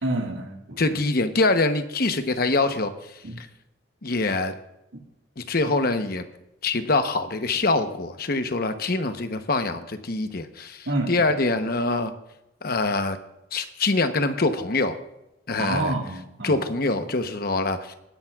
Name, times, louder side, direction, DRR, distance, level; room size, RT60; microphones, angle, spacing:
voice 1, 0.0-1.0 3.2-3.4 4.9-5.0 10.9-11.4 15.6-16.6, right 2 dB, 85° right, 2 dB, 1.9 m, -29 dB
voice 2, 0.8-3.5 4.0-4.5 5.4-6.2 6.6-12.1 12.6-13.2 13.5-14.9 15.5-15.9 16.4-17.9, left 3 dB, 50° left, 8 dB, 0.9 m, -24 dB
19.5 x 10.5 x 2.4 m, 0.89 s
head